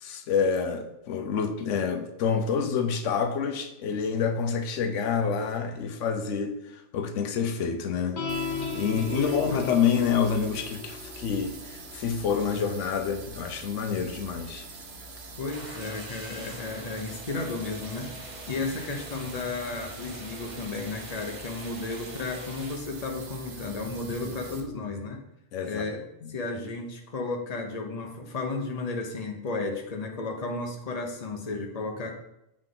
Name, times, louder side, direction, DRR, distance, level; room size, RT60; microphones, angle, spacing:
voice 1, 0.0-8.2 8.5-14.6 25.5-25.9 26.2-26.4, left 6 dB, 85° left, 7 dB, 1.0 m, -28 dB
sound 1, 8.2-14.8, left 4 dB, 65° left, 1.4 m, -38 dB
sound 2, 8.3-24.6, right 3 dB, 60° right, 1.1 m, -44 dB
voice 2, 9.1-9.6 15.4-25.2 25.7-26.0 26.3-32.1, left 3 dB, 35° left, 2 dB, 0.9 m, -33 dB
sound 3, 15.4-22.8, right 1 dB, 40° right, 1.1 m, -45 dB
7.4 x 4.8 x 3.9 m, 0.85 s
omnidirectional pair, 1.2 m